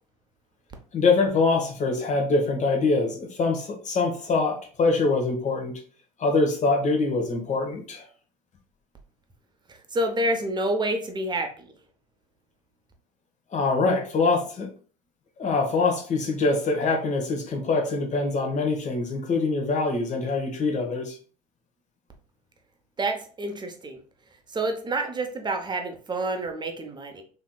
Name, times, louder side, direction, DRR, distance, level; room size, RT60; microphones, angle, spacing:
voice 1, 0.9-5.8 6.2-8.1 13.5-14.7 15.4-21.2, left 3 dB, 35° left, 3 dB, 1.1 m, -24 dB
voice 2, 9.9-11.7 23.0-24.0 24.5-27.2, right 1 dB, 20° right, 5 dB, 0.7 m, -28 dB
3.2 x 2.8 x 2.3 m, 0.41 s
hypercardioid pair, 75°, 21 cm